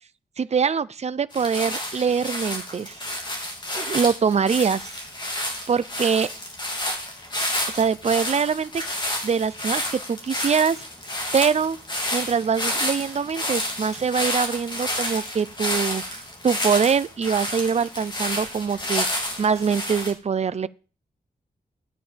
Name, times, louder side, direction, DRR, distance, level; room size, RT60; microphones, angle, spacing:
voice 1, 0.4-3.0 3.8-4.9 5.7-6.3 7.7-8.7 9.2-10.9 11.3-11.8 12.1-20.7, right 6 dB, 40° right, 0.5 m, -23 dB
sound 1, 1.3-20.1, left 1 dB, 30° left, 3.2 m, -30 dB
12.5 x 9.0 x 5.1 m
wide cardioid pair, 150°, 16 cm